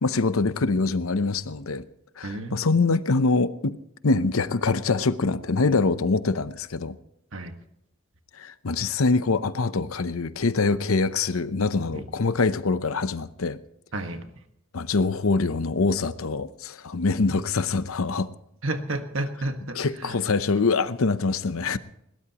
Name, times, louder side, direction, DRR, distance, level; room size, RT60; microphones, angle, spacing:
voice 1, 0.0-1.9 2.2-3.8 4.0-7.0 8.4-13.6 14.7-18.3 19.8-21.8, left 3 dB, 80° left, 13 dB, 0.8 m, -24 dB
voice 2, 2.2-2.7 7.3-7.5 11.9-12.1 13.9-14.2 18.6-20.2, right 2 dB, 65° right, 6 dB, 1.6 m, -31 dB
21.0 x 17.5 x 3.0 m, 0.78 s
head